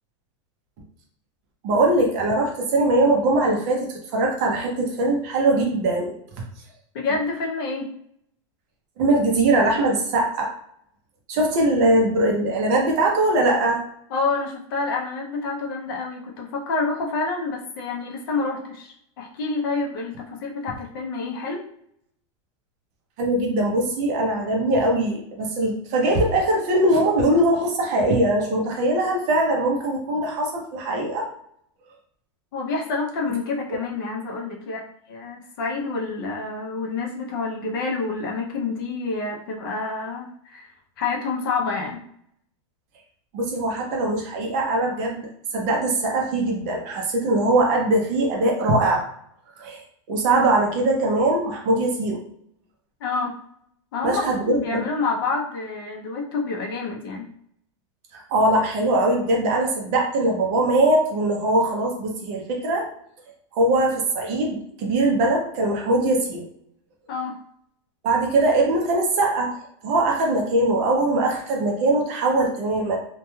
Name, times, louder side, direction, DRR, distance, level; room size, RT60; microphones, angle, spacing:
voice 1, 1.6-6.1 9.0-10.5 11.3-13.8 23.2-31.3 43.3-45.3 45.5-49.1 49.6-52.2 54.0-54.9 58.1-62.9 63.5-66.5 68.0-73.0, right 2 dB, 35° right, 0 dB, 0.5 m, -21 dB
voice 2, 6.9-7.9 14.1-21.7 32.5-40.7 41.0-42.0 53.0-53.3 53.9-57.3 67.1-67.4, left 4 dB, 45° left, 0 dB, 0.5 m, -28 dB
2.2 x 2.2 x 3.0 m, 0.69 s
supercardioid pair, 175°, 16 cm